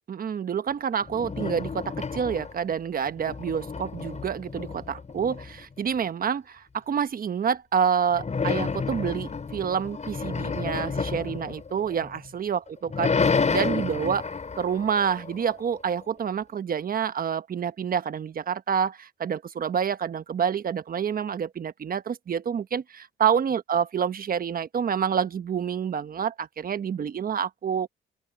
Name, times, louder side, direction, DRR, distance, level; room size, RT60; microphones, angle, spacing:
voice 1, 0.0-14.3 14.6-27.9, right 7 dB, 45° right, 1.2 m, -28 dB
sound 1, 1.0-2.7 3.0-5.8 8.1-12.3 12.7-15.8, left 5 dB, 35° left, 6.7 m, -30 dB
open air
cardioid pair, 90°, 20 cm